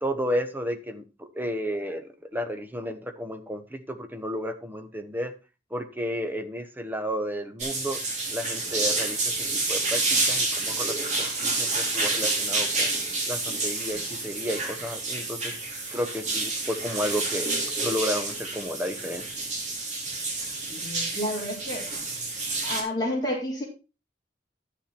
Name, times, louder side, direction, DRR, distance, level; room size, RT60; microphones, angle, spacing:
voice 1, 0.0-5.3 5.7-8.0 8.3-12.9 13.3-15.5 15.9-17.5 17.8-19.2, equal, 10° right, 7 dB, 1.1 m, -32 dB
sound 1, 7.6-22.8, right 3 dB, 40° right, 3.3 m, -29 dB
voice 2, 20.7-21.8 22.6-23.6, left 1 dB, 15° left, -7 dB, 4.0 m, -30 dB
11.5 x 7.2 x 4.3 m, 0.31 s
head